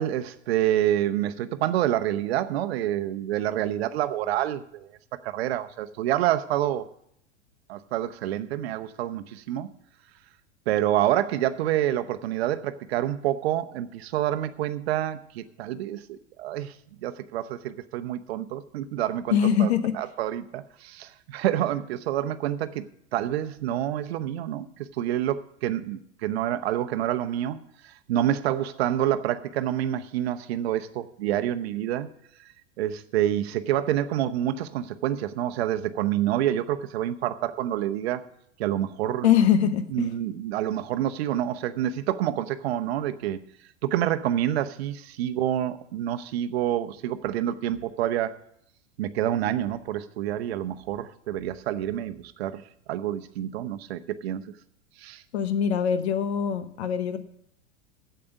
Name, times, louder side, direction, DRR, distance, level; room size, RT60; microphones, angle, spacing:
voice 1, 0.0-4.9 5.2-6.9 7.7-9.7 10.7-16.7 17.0-19.7 19.9-22.8 23.1-32.1 32.8-38.2 38.6-39.3 39.9-43.4 43.8-48.4 49.0-54.4 55.0-55.2, right 12 dB, 60° right, 11 dB, 0.9 m, -27 dB
voice 2, 19.3-19.9 39.2-40.1 55.3-57.2, left 8 dB, 65° left, 11 dB, 1.1 m, -23 dB
8.5 x 7.8 x 8.0 m, 0.72 s
hypercardioid pair, 95°, 35 cm